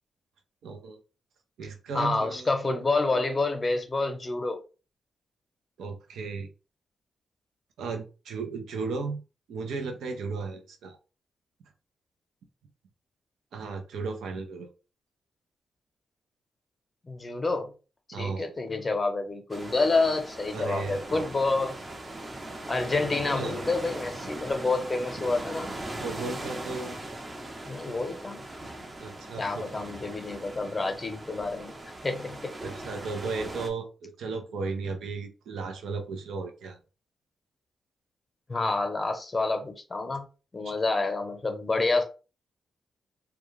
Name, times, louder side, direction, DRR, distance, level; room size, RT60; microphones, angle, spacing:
voice 1, 0.6-1.0 1.6-2.5 5.8-6.5 7.8-9.2 9.5-11.0 13.5-14.7 18.1-18.5 20.5-21.3 23.3-23.6 25.9-27.0 29.0-29.9 32.6-36.8, right 4 dB, 80° right, 0.5 m, -35 dB
voice 2, 1.9-4.6 17.0-17.7 18.2-21.8 22.7-25.7 27.6-28.4 29.4-31.8 32.0-32.5 38.5-40.3 40.5-42.0, left 3 dB, 35° left, 0.8 m, -28 dB
sound 1, 19.5-33.7, right 1 dB, 35° right, 0.7 m, -39 dB
2.3 x 2.2 x 3.1 m
supercardioid pair, 45°, 0 cm